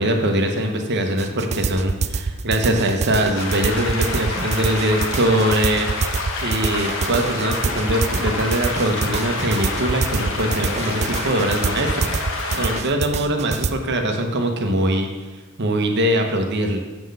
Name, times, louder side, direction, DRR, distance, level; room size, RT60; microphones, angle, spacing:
voice 1, 0.0-5.9 6.4-12.2 12.5-16.8, right 1 dB, 55° right, 4 dB, 0.9 m, -22 dB
sound 1, 1.2-13.7, right 4 dB, 30° right, 0.3 m, -26 dB
sound 2, 3.3-12.8, left 3 dB, 65° left, 0.9 m, -28 dB
6.9 x 4.0 x 6.5 m, 1.2 s
head